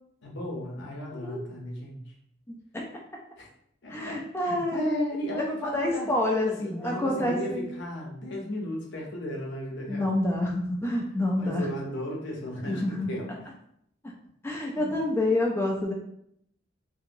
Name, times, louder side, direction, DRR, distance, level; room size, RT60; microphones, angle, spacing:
voice 1, 0.2-2.0 3.4-3.5 3.8-6.1 6.4-10.2 11.4-13.3 14.8-14.9, equal, 65° left, -1 dB, 0.7 m, -35 dB
voice 2, 1.1-1.4 2.7-2.9 3.9-6.5 6.8-7.6 9.9-11.7 12.7-13.1 14.4-15.9, left 1 dB, 15° left, -1 dB, 0.4 m, -28 dB
2.8 x 2.7 x 2.5 m, 0.72 s
head